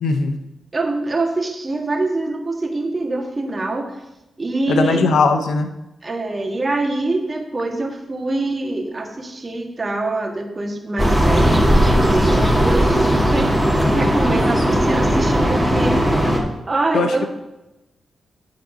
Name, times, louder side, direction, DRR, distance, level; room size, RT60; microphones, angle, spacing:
voice 1, 0.0-0.4 4.7-5.7 13.8-14.1 16.9-17.3, left 4 dB, 80° left, 7 dB, 0.8 m, -19 dB
voice 2, 0.7-4.0 4.4-5.0 6.0-13.5 13.9-16.0 16.7-17.3, right 2 dB, 35° right, 3 dB, 1.6 m, -24 dB
sound 1, 11.0-16.4, equal, ahead, 1.8 m, -17 dB
9.7 x 4.1 x 6.3 m, 0.93 s
cardioid pair, 65°, 0 cm